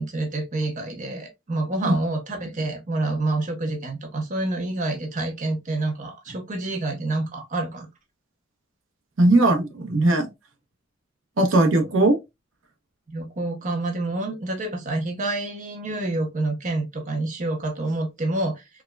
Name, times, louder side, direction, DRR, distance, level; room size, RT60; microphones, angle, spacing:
voice 1, 0.0-7.9 11.6-11.9 13.1-18.7, right 2 dB, 40° right, 0.7 m, -28 dB
voice 2, 9.2-10.3 11.4-12.2, right 2 dB, 75° right, 0.8 m, -19 dB
4.6 x 2.1 x 2.2 m
head